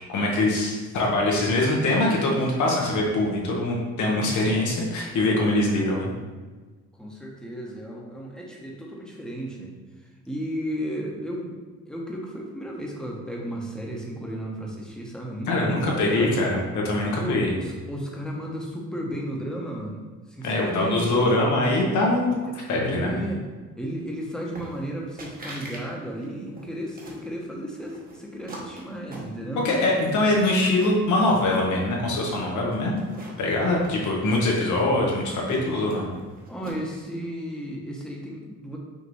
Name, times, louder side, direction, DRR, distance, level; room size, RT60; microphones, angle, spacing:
voice 1, 0.1-6.1 15.5-16.6 16.8-17.5 20.4-22.4 22.7-23.1 29.5-32.9 33.4-36.1, left 2 dB, 75° left, -2 dB, 1.1 m, -23 dB
voice 2, 7.0-16.4 17.1-21.3 22.4-23.4 23.8-29.7 36.5-38.8, right 1 dB, ahead, -2 dB, 0.9 m, -34 dB
sound 1, 24.6-24.9 25.2-25.8 26.2-27.3 27.8-29.7 30.1-31.1 31.5-32.2 32.7-34.8 35.0-37.0, right 2 dB, 30° right, 0.9 m, -43 dB
5.2 x 2.6 x 3.1 m, 1.3 s
cardioid pair, 90°, 30 cm